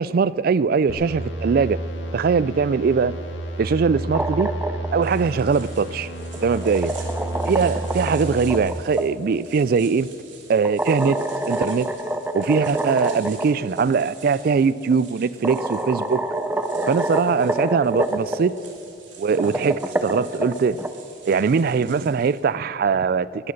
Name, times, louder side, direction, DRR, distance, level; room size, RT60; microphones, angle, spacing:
voice 1, 0.0-1.8 2.1-3.1 3.6-4.5 4.9-6.1 6.4-7.0 7.5-10.1 10.5-11.2 11.5-11.9 12.3-16.2 16.9-18.6 19.2-20.8 21.3-23.5, right 5 dB, 50° right, 0.3 m, -21 dB
sound 1, 0.9-8.6, right 1 dB, 85° left, 2.0 m, -31 dB
sound 2, 4.0-5.0 6.2-9.1 10.6-13.5 13.8-13.9 14.9-15.0 15.4-18.4 19.2-20.9, right 1 dB, 10° right, 0.6 m, -27 dB
sound 3, 5.0-22.5, right 6 dB, 75° right, 2.7 m, -47 dB
19.5 x 9.5 x 6.6 m
head